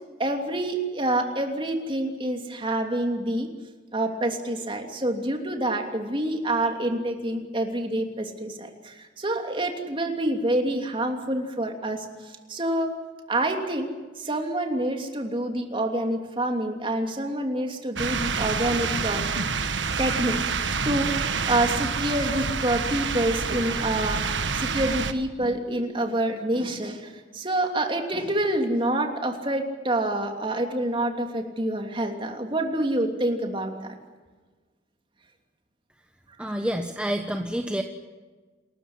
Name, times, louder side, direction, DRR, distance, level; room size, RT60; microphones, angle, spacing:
voice 1, 0.2-3.5 3.9-12.9 13.3-19.2 20.0-24.2 24.5-33.9, right 1 dB, 30° right, 3 dB, 3.0 m, -27 dB
sound 1, 18.0-25.1, right 5 dB, 90° right, 1.5 m, -27 dB
voice 2, 36.4-37.8, equal, 5° right, 4 dB, 1.1 m, -28 dB
28.5 x 14.0 x 9.7 m, 1.3 s
head